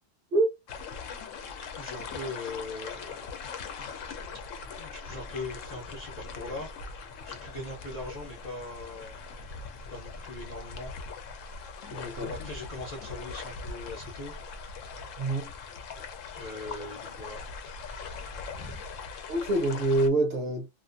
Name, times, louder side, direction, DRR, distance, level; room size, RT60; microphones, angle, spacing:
sound 1, 0.7-20.1, left 5 dB, 80° left, 0.9 m, -41 dB
voice 1, 1.6-3.3 3.9-4.0 4.8-9.2 9.9-10.9 12.2-14.3 16.4-18.8, left 2 dB, 40° left, 0.7 m, -41 dB
voice 2, 11.9-12.3 15.2-15.5 19.3-20.7, right 2 dB, 50° right, 0.8 m, -26 dB
2.4 x 2.4 x 2.4 m
omnidirectional pair, 1.3 m